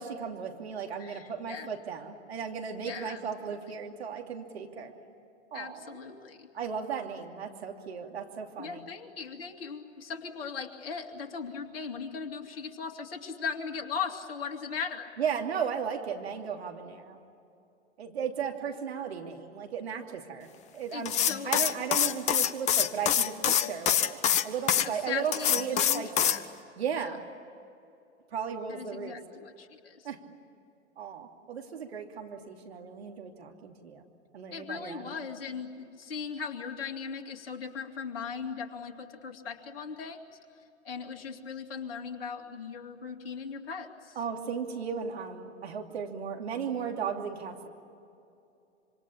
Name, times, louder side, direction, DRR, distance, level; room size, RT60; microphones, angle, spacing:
voice 1, 0.0-4.9 5.5-6.0 6.5-8.8 15.2-17.2 18.0-24.2 24.4-26.4 26.8-27.2 28.3-29.2 30.0-30.2 31.0-34.0 34.3-35.3 44.2-47.7, right 7 dB, 60° right, 3 dB, 2.9 m, -36 dB
voice 2, 1.0-1.7 2.8-3.2 3.5-3.6 5.5-6.5 8.6-15.1 20.9-21.8 24.8-26.4 26.9-27.2 28.7-30.1 34.5-40.2 40.8-44.2, left 6 dB, 55° left, 4 dB, 2.7 m, -38 dB
sound 1, 21.0-24.9 25.3-26.4, left 9 dB, 20° left, 0.8 m, -25 dB
26.5 x 25.5 x 8.7 m, 2.7 s
figure-of-eight pair, 105°, 35 cm